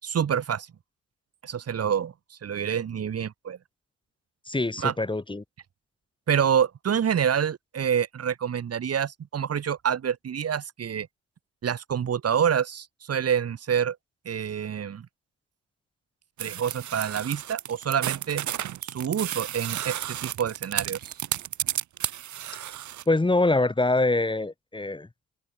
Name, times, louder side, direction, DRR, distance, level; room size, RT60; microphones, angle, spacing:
voice 1, 0.0-0.7 1.4-3.6 4.8-4.9 6.3-11.1 11.6-14.0 14.3-15.1 16.4-18.5 18.8-21.1, right 8 dB, 55° right, 4.1 m, -27 dB
voice 2, 4.5-5.4 23.1-25.1, left 2 dB, 15° left, 4.2 m, -24 dB
sound 1, 16.4-23.0, right 12 dB, 70° right, 3.9 m, -32 dB
cardioid pair, 90°, 30 cm